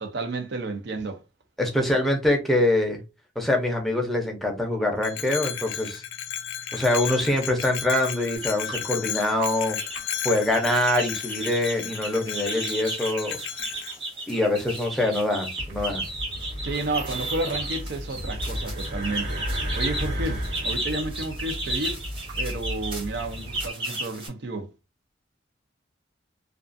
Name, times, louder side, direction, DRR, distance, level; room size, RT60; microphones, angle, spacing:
voice 1, 0.0-1.2 16.6-19.4 19.8-22.0 22.4-24.7, right 2 dB, 60° right, 0.5 m, -31 dB
voice 2, 1.6-3.0 3.4-6.0 6.7-9.8 10.2-13.4 14.3-16.0, left 1 dB, ahead, 0.6 m, -24 dB
Bell, 5.0-14.0, left 10 dB, 85° left, 0.4 m, -34 dB
sound 1, 8.3-8.8 9.4-10.0 10.3-24.3, right 2 dB, 25° right, 0.9 m, -34 dB
sound 2, 15.6-23.7, equal, 85° right, 1.4 m, -33 dB
2.4 x 2.3 x 2.5 m
head